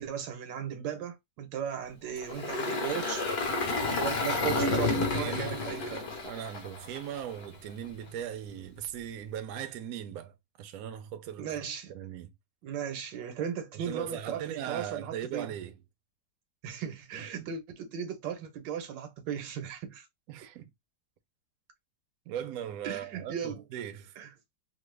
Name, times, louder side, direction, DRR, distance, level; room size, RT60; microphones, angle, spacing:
voice 1, 0.0-3.3 3.9-6.2 11.4-11.9 12.6-15.5 16.6-20.1 22.8-23.6 24.2-24.3, right 8 dB, 85° right, 1.5 m, -37 dB
Engine, 2.2-7.4, left 3 dB, 55° left, 0.7 m, -31 dB
voice 2, 4.5-5.6 6.2-11.6 11.9-12.3 13.7-15.8 17.4-17.5 20.3-20.7 22.3-24.2, right 10 dB, 70° right, 0.9 m, -39 dB
3.1 x 2.1 x 3.1 m
omnidirectional pair, 1.9 m